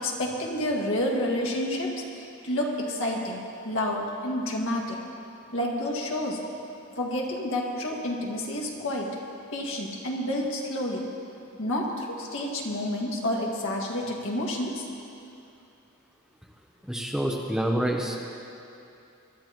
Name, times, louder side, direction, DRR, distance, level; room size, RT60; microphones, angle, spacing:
voice 1, 0.0-1.9 2.2-5.0 5.5-6.4 7.0-9.1 9.5-11.0 11.6-14.9, left 1 dB, 65° left, -2 dB, 2.0 m, -29 dB
voice 2, 16.8-18.2, right 1 dB, 5° right, 0 dB, 0.8 m, -27 dB
22.5 x 12.5 x 3.0 m, 2.7 s
head